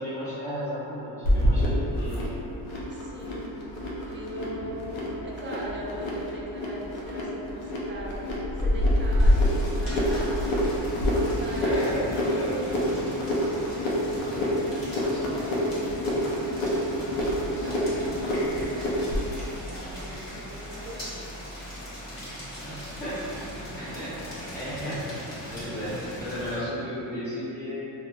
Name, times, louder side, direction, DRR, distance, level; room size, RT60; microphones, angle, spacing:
voice 1, 0.0-2.3 11.6-12.5 22.6-23.2 23.5-27.8, equal, 5° left, -15 dB, 0.7 m, -34 dB
sound 1, 1.2-19.3, equal, 85° left, 0.7 m, -27 dB
voice 2, 2.9-3.5 4.1-4.9 5.2-8.2 8.6-10.5 11.3-13.1 13.5-16.9 17.6-21.3, right 1 dB, 25° right, -4 dB, 0.5 m, -41 dB
sound 2, 9.2-26.6, equal, 35° left, 0.9 m, -39 dB
2.6 x 2.2 x 2.3 m, 2.9 s
cardioid pair, 80°, 46 cm